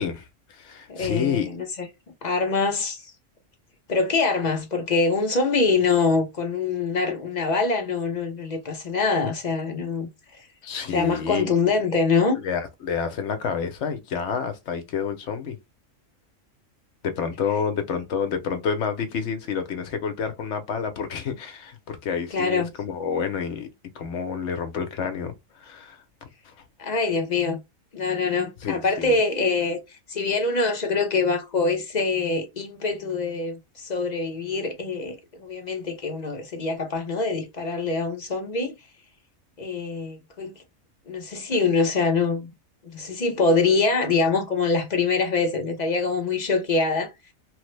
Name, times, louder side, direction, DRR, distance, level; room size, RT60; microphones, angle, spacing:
voice 1, 0.0-1.5 10.6-11.5 12.4-15.6 17.0-23.7 23.9-26.0 26.4-26.5 28.6-29.2, left 6 dB, 65° left, 0.9 m, -29 dB
voice 2, 0.9-1.9 2.2-3.1 3.9-10.5 10.9-12.4 22.3-22.7 26.8-27.6 27.9-38.7 39.6-40.6 41.1-42.5 42.8-47.1, left 4 dB, 40° left, 0.7 m, -24 dB
3.2 x 2.0 x 3.1 m
omnidirectional pair, 1.3 m